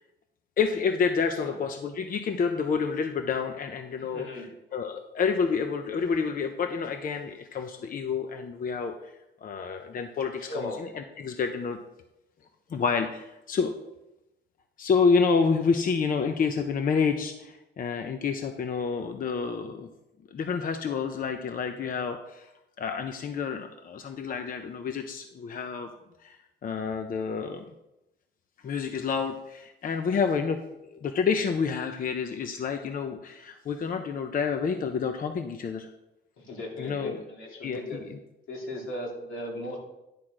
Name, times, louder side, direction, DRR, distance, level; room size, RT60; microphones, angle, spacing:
voice 1, 0.6-4.3 4.7-9.1 9.4-11.8 12.7-13.8 14.8-19.9 20.3-22.5 22.8-25.9 26.2-26.4 26.6-27.6 28.6-30.6 30.9-35.9 36.8-37.2 37.6-38.0, left 5 dB, 45° left, 6 dB, 0.7 m, -28 dB
voice 2, 4.0-4.5 9.9-10.0 10.4-10.8 36.4-38.0 38.5-39.8, left 1 dB, 80° left, -1 dB, 2.4 m, -37 dB
10.0 x 3.7 x 6.3 m, 0.92 s
cardioid pair, 90°, 20 cm